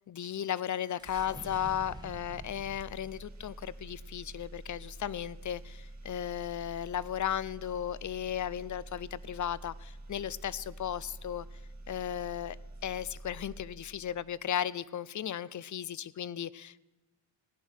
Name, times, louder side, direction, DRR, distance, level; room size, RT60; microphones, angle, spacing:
voice 1, 0.1-11.5 11.9-12.6 12.8-16.8, left 10 dB, 40° left, 20 dB, 0.6 m, -35 dB
sound 1, 1.0-5.3, right 2 dB, 10° right, 1.2 m, -50 dB
sound 2, 1.0-14.4, right 1 dB, 35° right, 1.9 m, -48 dB
16.5 x 10.0 x 6.4 m, 1.2 s
cardioid pair, 85°, 47 cm